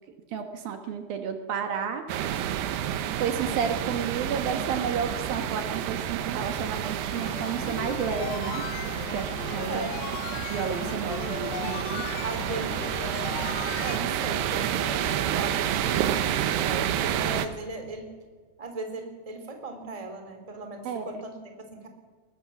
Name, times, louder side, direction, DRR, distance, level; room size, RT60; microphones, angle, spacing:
voice 1, 0.3-2.1 3.2-8.6 9.1-9.9 10.5-12.1 12.6-12.7 20.8-21.2, right 7 dB, 70° right, 6 dB, 3.1 m, -31 dB
sound 1, 2.1-17.5, right 10 dB, 90° right, 3.2 m, -29 dB
sound 2, 7.1-14.0, left 12 dB, 75° left, 2.5 m, -38 dB
voice 2, 9.6-10.1 12.2-12.9 13.8-18.1 18.6-21.9, right 3 dB, 10° right, 5 dB, 2.6 m, -38 dB
22.0 x 21.0 x 7.2 m, 1.5 s
omnidirectional pair, 4.6 m